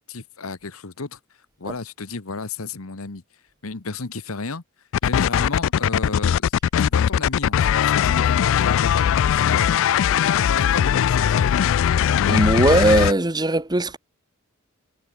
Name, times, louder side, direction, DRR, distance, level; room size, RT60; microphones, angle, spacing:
voice 1, 0.1-1.2 1.6-3.2 3.6-4.6 5.0-6.5 6.8-9.8 10.4-11.6, left 4 dB, 85° left, 1.3 m, -33 dB
sound 1, 4.9-13.1, left 9 dB, 65° left, 0.3 m, -19 dB
voice 2, 12.3-14.0, right 2 dB, 20° right, 1.5 m, -19 dB
head